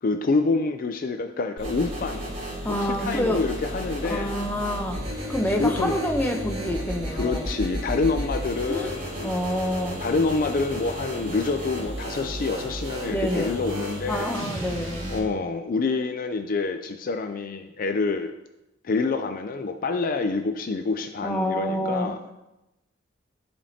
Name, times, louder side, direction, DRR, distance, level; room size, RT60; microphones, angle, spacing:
voice 1, 0.0-2.3 2.7-4.3 5.6-5.9 7.1-9.3 10.0-14.4 15.1-18.3 18.8-22.2, left 3 dB, 45° left, 7 dB, 0.4 m, -27 dB
sound 1, 1.6-15.2, equal, 45° right, 2.6 m, -33 dB
voice 2, 2.6-3.5 4.0-5.0 5.3-7.5 8.7-10.0 13.1-13.6 14.1-15.1 21.2-22.1, equal, 10° left, 2 dB, 0.8 m, -27 dB
13.0 x 5.1 x 2.8 m, 0.95 s
head